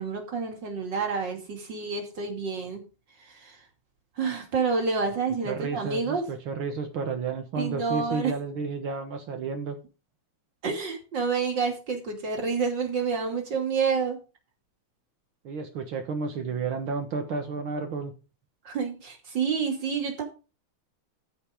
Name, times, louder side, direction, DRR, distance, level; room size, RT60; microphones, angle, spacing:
voice 1, 0.0-2.8 3.4-3.5 4.2-6.2 7.6-8.3 10.6-14.2 18.6-20.2, right 5 dB, 55° right, 2 dB, 3.2 m, -28 dB
voice 2, 5.5-9.8 15.4-18.1, right 4 dB, 70° right, 4 dB, 2.1 m, -31 dB
14.0 x 5.4 x 5.1 m, 0.32 s
omnidirectional pair, 2.4 m